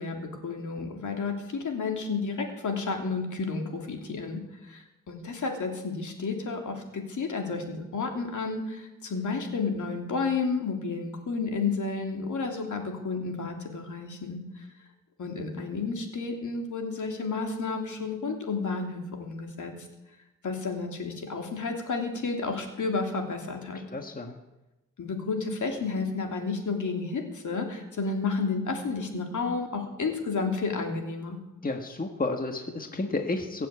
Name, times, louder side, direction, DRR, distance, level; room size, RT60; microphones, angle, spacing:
voice 1, 0.0-14.6 15.2-19.7 20.4-23.8 25.0-31.4, left 4 dB, 65° left, 3 dB, 3.2 m, -31 dB
voice 2, 23.7-24.3 31.6-33.7, left 2 dB, 25° left, 4 dB, 1.6 m, -31 dB
22.0 x 7.6 x 8.4 m, 1.0 s
cardioid pair, 75°, 32 cm